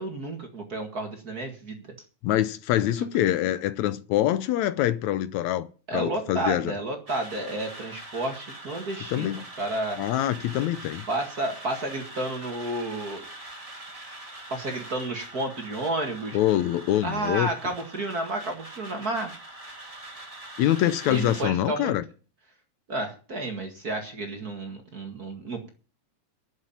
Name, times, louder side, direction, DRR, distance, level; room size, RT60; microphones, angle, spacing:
voice 1, 0.0-1.8 5.9-10.0 11.1-13.2 14.5-16.4 17.0-19.3 21.1-21.9 22.9-25.7, right 2 dB, 35° right, 2.1 m, -31 dB
voice 2, 2.2-5.7 5.9-6.7 9.1-9.4 10.0-11.0 16.3-17.5 20.6-22.0, left 12 dB, 75° left, 2.0 m, -25 dB
sound 1, 7.1-21.4, right 1 dB, 15° right, 1.7 m, -43 dB
11.5 x 7.5 x 8.7 m
omnidirectional pair, 3.4 m